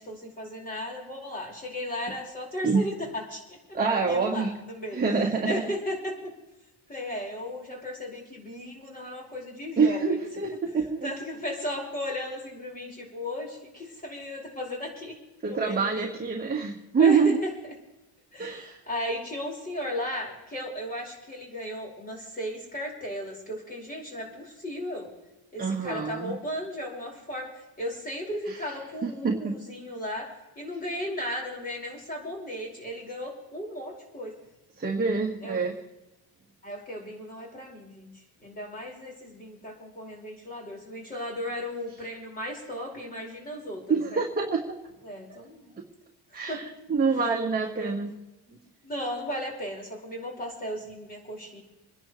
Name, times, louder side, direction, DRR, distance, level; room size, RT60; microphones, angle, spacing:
voice 1, 0.0-3.8 4.1-5.0 5.4-6.3 6.9-10.2 11.0-15.2 15.4-16.2 17.0-17.5 18.3-25.1 25.5-27.5 27.8-34.4 35.4-35.6 36.6-38.1 38.4-44.2 45.0-45.7 46.3-46.6 47.8-48.0 48.5-48.6 48.8-51.6, left 1 dB, 20° left, -2 dB, 5.1 m, -35 dB
voice 2, 3.7-4.5 4.9-5.6 9.8-11.1 15.4-17.4 18.4-18.8 25.6-26.4 28.5-28.6 29.0-29.5 34.8-35.7 43.9-44.6 45.3-45.4 46.3-48.1, right 5 dB, 25° right, -1 dB, 1.6 m, -26 dB
27.0 x 10.5 x 3.2 m, 0.98 s
cardioid pair, 140°, 40 cm